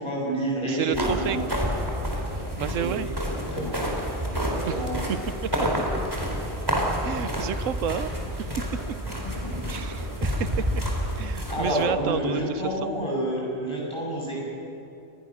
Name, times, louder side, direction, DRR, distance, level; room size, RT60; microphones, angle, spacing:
voice 1, 0.0-1.4 2.8-2.9 3.5-3.8 4.3-4.9 9.2-9.8 11.5-14.4, right 1 dB, 20° left, -4 dB, 7.7 m, -29 dB
voice 2, 0.6-1.4 2.6-3.1 4.7-5.2 5.4-5.7 7.0-8.1 8.4-8.5 9.7-10.8 11.2-12.4, right 9 dB, 85° right, 14 dB, 1.1 m, -30 dB
sound 1, 0.9-11.8, equal, 15° right, 4.2 m, -29 dB
27.5 x 20.5 x 6.4 m, 2.8 s
omnidirectional pair, 1.3 m